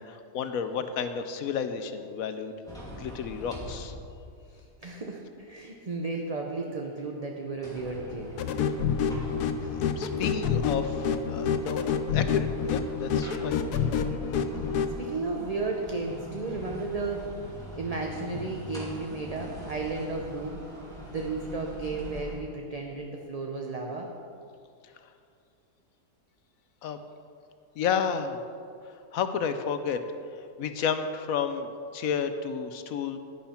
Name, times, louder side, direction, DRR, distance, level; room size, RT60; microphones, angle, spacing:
voice 1, 0.0-3.9 9.8-11.8 12.1-13.6 26.8-27.0 27.8-28.4 29.1-30.0 30.6-33.2, left 7 dB, 70° left, 9 dB, 1.0 m, -31 dB
sound 1, 2.7-4.5 4.9-5.0 7.5-22.4, equal, ahead, 2.5 m, -42 dB
voice 2, 4.8-8.4 15.0-17.3 17.8-20.6 21.1-24.1, right 3 dB, 35° right, 0 dB, 0.6 m, -33 dB
sound 2, 8.4-14.9, left 6 dB, 85° left, 1.2 m, -28 dB
11.0 x 10.5 x 4.4 m, 2.4 s
omnidirectional pair, 1.6 m